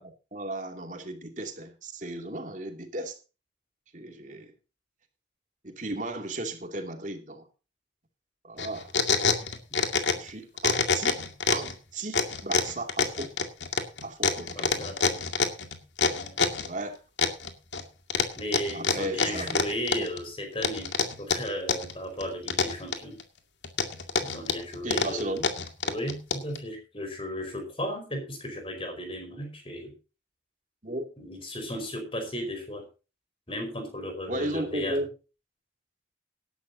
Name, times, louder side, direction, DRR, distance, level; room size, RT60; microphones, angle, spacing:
voice 1, 0.0-3.2 3.9-4.5 5.6-7.5 8.4-9.1 10.2-11.2 11.5-13.4 14.0-14.9 16.6-17.0 18.2-18.3 18.7-19.6 19.9-20.1 24.8-25.4 30.8-31.1 34.3-35.1, right 1 dB, 45° right, 4 dB, 2.6 m, -35 dB
sound 1, 8.6-10.3 10.6-11.7 12.1-16.7 17.2-17.8 18.1-20.2 20.6-21.9 22.2-23.2 23.6-26.6, left 4 dB, 75° left, 2.2 m, -26 dB
voice 2, 14.4-15.2 16.1-16.3 18.4-20.9 21.2-23.2 24.2-25.4 25.8-29.9 31.2-32.8 33.5-35.0, equal, 30° left, 5 dB, 4.9 m, -35 dB
18.5 x 11.5 x 2.8 m, 0.32 s
head